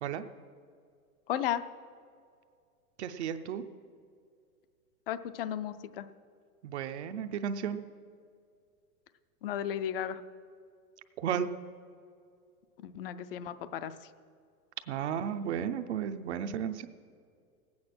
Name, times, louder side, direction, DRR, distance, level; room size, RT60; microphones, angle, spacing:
voice 1, 1.3-1.6 5.1-6.0 9.4-10.2 12.8-13.9, left 10 dB, 40° left, 13 dB, 0.5 m, -34 dB
voice 2, 3.0-3.6 6.6-7.8 11.2-11.5 14.9-16.9, right 8 dB, 50° right, 8 dB, 0.7 m, -33 dB
19.0 x 8.7 x 6.0 m, 2.2 s
supercardioid pair, 165°, 44 cm